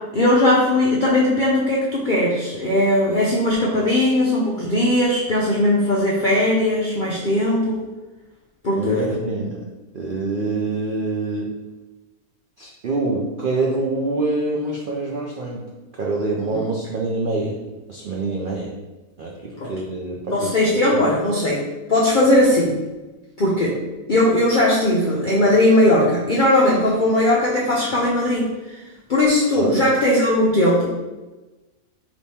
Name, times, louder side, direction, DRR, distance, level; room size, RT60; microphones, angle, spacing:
voice 1, 0.1-7.8 8.6-9.1 16.5-16.6 19.6-19.7 20.3-21.6 21.9-22.8 23.4-23.8 24.1-28.8 29.1-30.9, left 1 dB, 60° left, -4 dB, 0.5 m, -18 dB
voice 2, 8.8-9.7 9.9-11.5 12.6-15.6 15.9-17.6 17.9-18.7 19.2-20.5 20.9-21.0 29.6-29.7, right 3 dB, 90° right, -2 dB, 0.4 m, -25 dB
3.5 x 3.0 x 4.1 m, 1.1 s
omnidirectional pair, 1.6 m